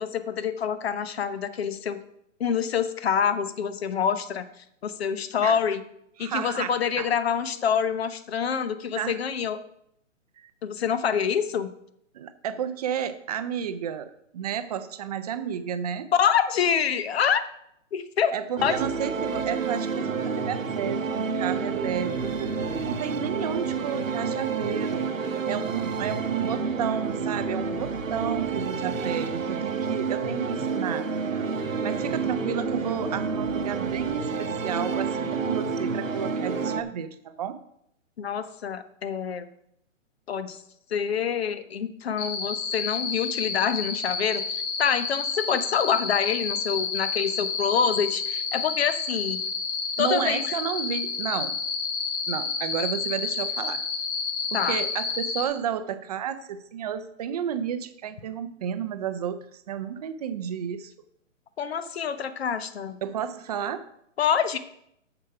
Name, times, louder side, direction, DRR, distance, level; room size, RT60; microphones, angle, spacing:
voice 1, 0.0-2.0 2.4-4.5 4.8-5.8 6.2-9.6 10.6-11.7 16.1-17.4 17.9-18.3 18.6-18.8 38.2-39.4 40.3-40.6 40.9-49.4 50.0-50.5 54.5-54.8 61.6-63.0 64.2-64.6, left 7 dB, 50° left, 13 dB, 0.9 m, -26 dB
voice 2, 6.2-7.1 8.9-9.2 10.4-10.5 12.1-16.1 18.3-22.5 22.8-25.1 25.5-31.1 31.8-37.6 50.0-51.6 52.3-53.8 54.5-60.9 63.0-63.9, right 8 dB, 30° right, 11 dB, 0.6 m, -32 dB
sound 1, 18.6-36.8, right 5 dB, 85° right, 1.0 m, -29 dB
sound 2, 42.2-55.4, left 5 dB, 25° left, 1.5 m, -30 dB
7.4 x 6.9 x 5.7 m, 0.74 s
hypercardioid pair, 135°, 39 cm